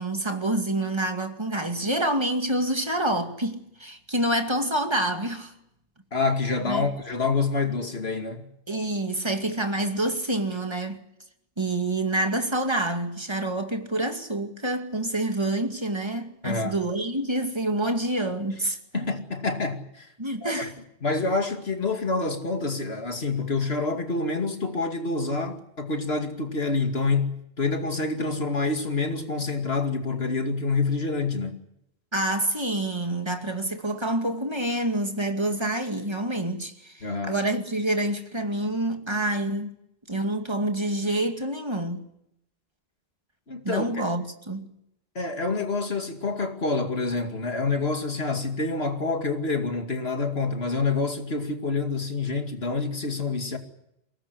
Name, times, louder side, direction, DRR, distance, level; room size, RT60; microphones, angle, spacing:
voice 1, 0.0-5.5 6.6-6.9 8.7-11.0 11.6-19.1 20.2-20.7 32.1-39.8 40.1-42.0 43.6-44.7, right 1 dB, 25° right, 2.4 m, -27 dB
voice 2, 6.1-8.5 16.4-16.7 18.9-20.1 20.4-20.7 21.0-31.6 37.0-37.4 43.5-44.0 45.1-53.6, left 3 dB, 80° left, 2.7 m, -27 dB
23.0 x 19.0 x 9.9 m
omnidirectional pair, 1.1 m